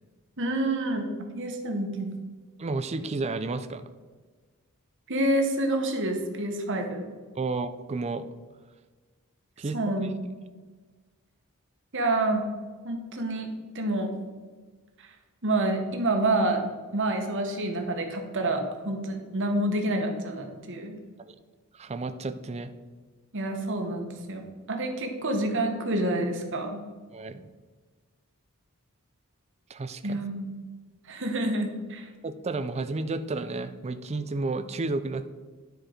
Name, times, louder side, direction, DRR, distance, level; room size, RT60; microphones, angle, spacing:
voice 1, 0.4-2.1 5.1-7.1 9.7-10.1 11.9-12.4 12.8-13.5 13.7-14.1 15.4-16.6 16.9-21.0 23.3-24.4 24.7-26.8 30.0-30.5 31.1-32.1, right 1 dB, 55° right, 4 dB, 1.2 m, -28 dB
voice 2, 2.6-3.8 7.4-8.2 9.6-9.8 21.2-21.3 21.7-22.7 27.1-27.5 29.7-30.2 32.2-35.3, right 3 dB, 30° right, 10 dB, 0.4 m, -32 dB
10.0 x 4.6 x 5.0 m, 1.4 s
head